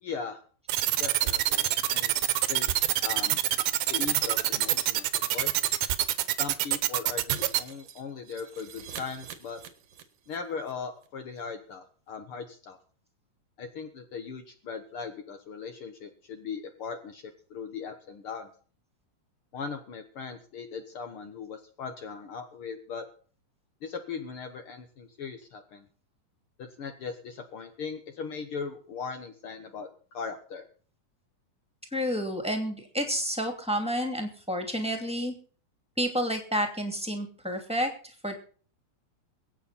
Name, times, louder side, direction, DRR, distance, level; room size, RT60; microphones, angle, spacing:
voice 1, 0.0-0.4 1.0-2.2 2.5-3.4 3.9-5.5 6.4-9.6 10.3-12.8 13.6-17.2 17.5-18.5 19.5-23.0 23.8-25.9 26.6-29.9 30.1-30.6, left 5 dB, 80° left, 6 dB, 1.2 m, -39 dB
sound 1, 0.7-7.6, right 14 dB, 80° right, 2.7 m, -25 dB
Shatter, 7.3-10.4 10.6-10.7 11.0-11.1, right 8 dB, 55° right, 2.0 m, -44 dB
voice 2, 31.9-35.3 36.0-38.3, equal, ahead, 4 dB, 1.8 m, -30 dB
23.0 x 9.1 x 4.2 m, 0.42 s
omnidirectional pair, 4.4 m